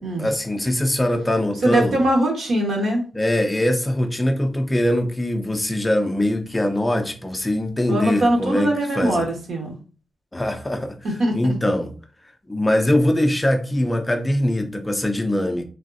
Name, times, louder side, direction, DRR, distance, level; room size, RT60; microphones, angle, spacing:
voice 1, 0.2-2.0 3.1-9.2 10.3-11.0 11.3-11.9 12.5-15.7, left 1 dB, 10° left, 0.4 m, -22 dB
voice 2, 1.6-3.0 7.9-9.7 11.0-11.5, right 1 dB, 70° right, 1.0 m, -21 dB
3.4 x 2.3 x 2.5 m
wide cardioid pair, 160°, 0 cm